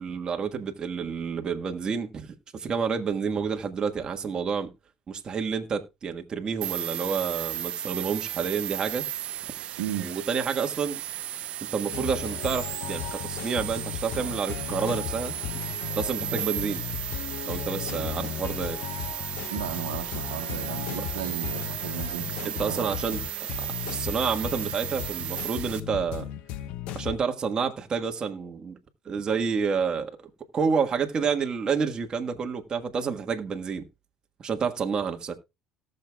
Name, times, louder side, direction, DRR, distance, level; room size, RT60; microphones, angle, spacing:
voice 1, 0.0-2.3 2.5-4.7 5.1-9.0 10.0-11.0 11.7-15.3 15.9-16.8 17.4-18.8 22.4-23.2 23.6-26.2 26.9-28.8 29.0-33.8 34.4-35.3, right 6 dB, 40° right, 1.5 m, -29 dB
sound 1, 6.6-25.8, right 12 dB, 60° right, 0.4 m, -35 dB
voice 2, 9.8-10.1 19.5-23.0 23.8-24.1, right 12 dB, 90° right, 1.4 m, -35 dB
sound 2, 11.9-27.2, left 12 dB, 70° left, 0.7 m, -36 dB
18.0 x 6.6 x 2.3 m
supercardioid pair, 75°, 2 cm